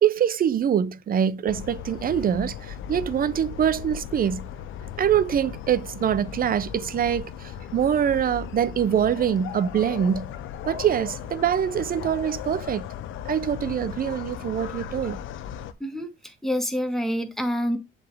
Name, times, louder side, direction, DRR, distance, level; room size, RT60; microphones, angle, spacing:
voice 1, 0.0-4.4 5.0-10.3 10.6-12.9 13.3-15.2, right 9 dB, 45° right, 0.6 m, -24 dB
sound 1, 1.5-15.7, left 9 dB, 85° left, 0.7 m, -37 dB
voice 2, 15.8-17.8, equal, ahead, 1.6 m, -27 dB
7.5 x 4.1 x 3.4 m
cardioid pair, 90°, 20 cm